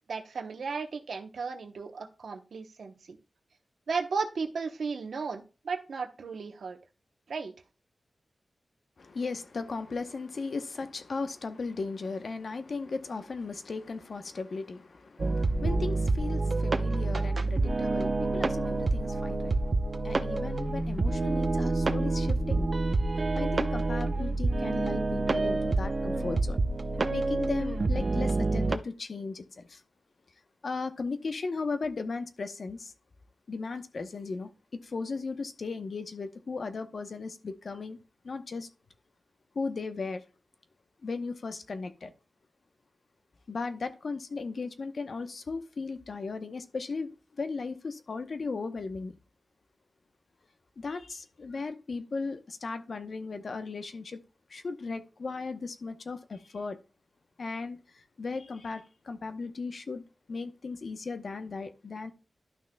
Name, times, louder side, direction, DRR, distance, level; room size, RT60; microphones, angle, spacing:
voice 1, 0.1-3.2 3.9-6.8 7.3-7.5, right 5 dB, 80° right, 0.9 m, -35 dB
voice 2, 9.0-19.6 20.0-22.7 23.3-26.6 27.1-29.8 30.6-32.9 33.5-34.5 34.8-38.0 38.2-38.7 39.5-40.2 41.0-42.1 43.5-49.2 50.8-54.2 54.5-56.8 57.4-62.1, left 4 dB, 65° left, 0.8 m, -36 dB
sound 1, 15.2-28.8, right 2 dB, 50° right, 0.6 m, -28 dB
12.0 x 5.9 x 2.2 m
wide cardioid pair, 80°, 0 cm